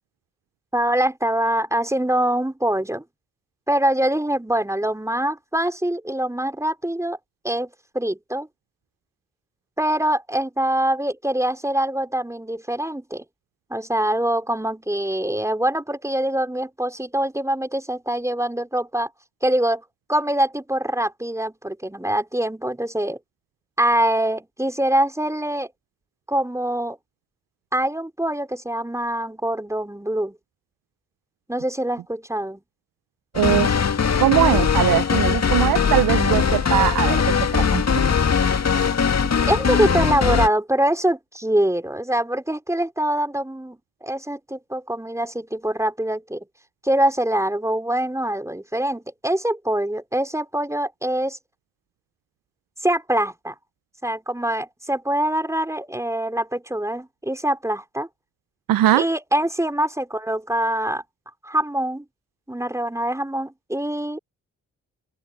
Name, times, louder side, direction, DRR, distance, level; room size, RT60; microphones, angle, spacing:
voice 1, 0.7-3.0 3.7-7.2 7.4-8.5 9.8-13.2 13.7-19.1 19.4-19.8 20.1-23.2 23.8-25.7 26.3-27.0 27.7-30.4 31.5-32.6 39.5-46.4 46.8-51.4 52.8-53.5 54.0-58.1 58.9-61.0 61.4-62.0 62.5-64.2, right 1 dB, 10° right, 5.0 m, -24 dB
sound 1, 33.3-40.5, left 6 dB, 45° left, 2.2 m, -20 dB
voice 2, 33.3-33.7 34.2-37.8 58.7-59.0, right 14 dB, 70° right, 1.1 m, -20 dB
open air
hypercardioid pair, 40°, 35 cm